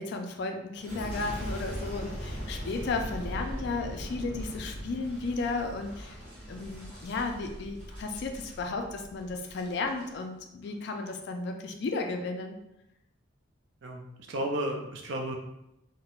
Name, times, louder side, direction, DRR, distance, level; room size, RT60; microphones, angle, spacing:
voice 1, 0.0-6.2 6.5-12.6, left 3 dB, 55° left, 4 dB, 0.3 m, -34 dB
Boom, 0.7-10.1 10.6-11.1, equal, 5° left, 1.0 m, -40 dB
voice 2, 13.8-15.4, right 1 dB, 60° right, 1 dB, 0.4 m, -33 dB
2.4 x 2.1 x 2.9 m, 0.85 s
head